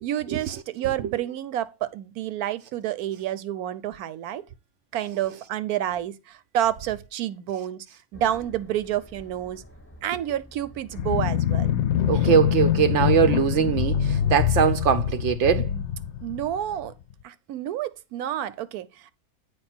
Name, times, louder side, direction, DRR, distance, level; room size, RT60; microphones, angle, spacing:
voice 1, 0.0-4.4 4.9-7.9 8.1-9.6 10.0-11.7 12.1-12.3 16.2-16.9 17.2-19.1, right 11 dB, 85° right, 1.2 m, -29 dB
sound 1, 8.1-14.5, left 2 dB, 10° left, 0.7 m, -43 dB
sound 2, 10.9-16.9, left 9 dB, 65° left, 0.8 m, -24 dB
voice 2, 12.1-15.7, right 8 dB, 65° right, 0.8 m, -21 dB
8.6 x 4.9 x 4.3 m
omnidirectional pair, 1.6 m